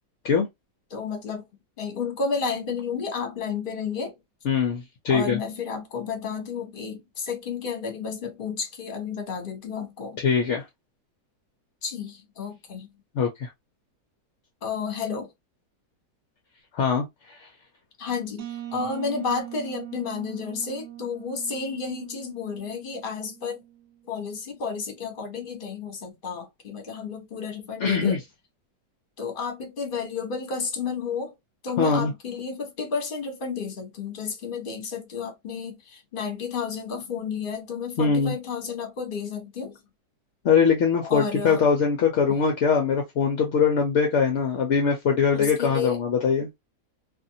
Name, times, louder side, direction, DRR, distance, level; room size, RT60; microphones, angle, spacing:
voice 1, 0.9-1.4 1.8-4.2 5.1-10.2 11.8-12.9 14.6-15.3 18.0-18.5 18.7-23.6 24.1-28.2 29.2-31.3 31.6-39.8 41.0-41.7 45.3-46.0, left 5 dB, 40° left, 0.9 m, -31 dB
voice 2, 4.5-5.4 10.2-10.6 13.1-13.5 16.7-17.1 17.4-17.5 27.8-28.2 31.8-32.1 38.0-38.3 40.4-46.5, left 6 dB, 65° left, 0.7 m, -22 dB
sound 1, 18.4-24.0, right 12 dB, 70° right, 1.1 m, -41 dB
2.6 x 2.6 x 2.6 m
omnidirectional pair, 1.7 m